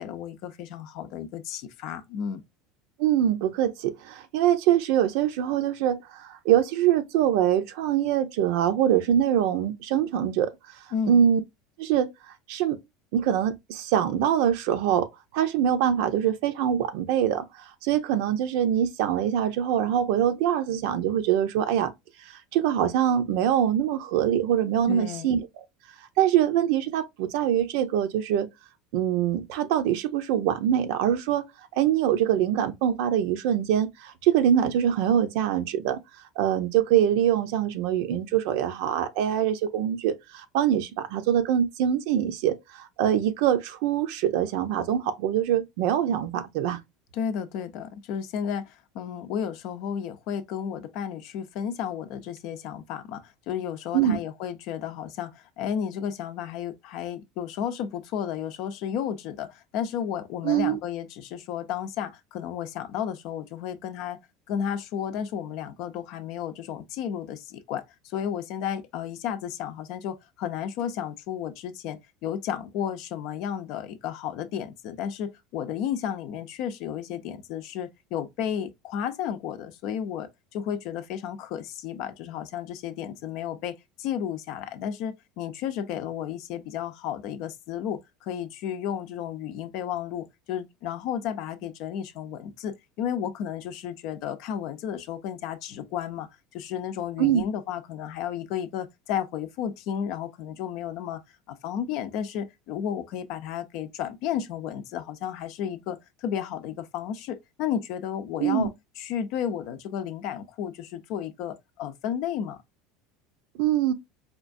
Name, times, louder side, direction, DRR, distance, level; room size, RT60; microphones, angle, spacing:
voice 1, 0.0-2.4 10.9-11.3 24.9-25.3 47.1-64.2 64.5-96.3 96.5-101.2 101.5-112.6, left 9 dB, 60° left, 0.5 m, -33 dB
voice 2, 3.0-10.5 11.1-11.4 11.8-12.1 12.5-12.8 13.1-15.1 15.3-21.9 22.3-25.5 26.2-28.5 28.9-31.4 31.8-36.0 36.4-46.8 53.9-54.2 60.4-60.8 97.2-97.4 108.4-108.7 113.6-113.9, right 10 dB, 70° right, 0.6 m, -24 dB
4.4 x 2.3 x 2.5 m
supercardioid pair, 115°, 0 cm